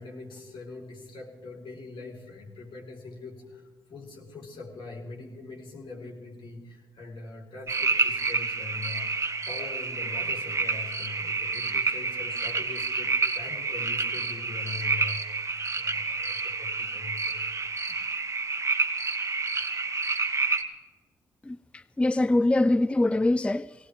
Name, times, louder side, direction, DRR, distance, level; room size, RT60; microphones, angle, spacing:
voice 1, 0.0-9.1 9.5-15.5 15.7-17.5 17.9-18.0, left 3 dB, 60° left, 4.0 m, -42 dB
sound 1, 7.7-20.6, right 4 dB, 30° right, 1.8 m, -29 dB
voice 2, 21.5-23.7, left 2 dB, 10° left, 0.4 m, -24 dB
18.5 x 18.0 x 3.5 m
hypercardioid pair, 40°, 9 cm